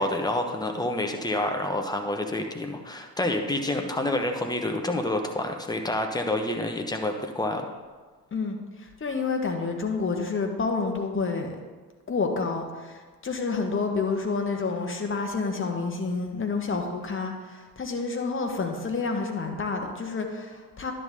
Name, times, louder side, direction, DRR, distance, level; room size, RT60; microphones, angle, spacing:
voice 1, 0.0-7.7, left 1 dB, 10° left, 4 dB, 1.1 m, -28 dB
voice 2, 8.3-11.6 12.1-20.9, left 4 dB, 25° left, 3 dB, 1.4 m, -29 dB
10.5 x 3.8 x 6.8 m, 1.4 s
figure-of-eight pair, 55°, 49 cm